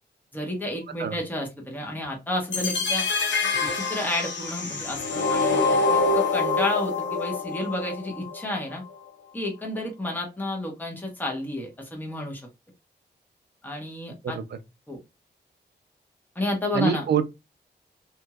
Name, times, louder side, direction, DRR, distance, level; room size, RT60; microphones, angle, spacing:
voice 1, 0.3-3.1 3.6-8.8 9.3-12.4 13.6-14.4 14.9-15.0 16.3-17.0, left 1 dB, 10° left, 1.1 m, -31 dB
sound 1, 2.5-8.5, left 3 dB, 90° left, 0.7 m, -25 dB
voice 2, 14.2-14.6 16.7-17.2, right 7 dB, 65° right, 0.5 m, -25 dB
3.0 x 2.6 x 2.3 m
wide cardioid pair, 90°, 18 cm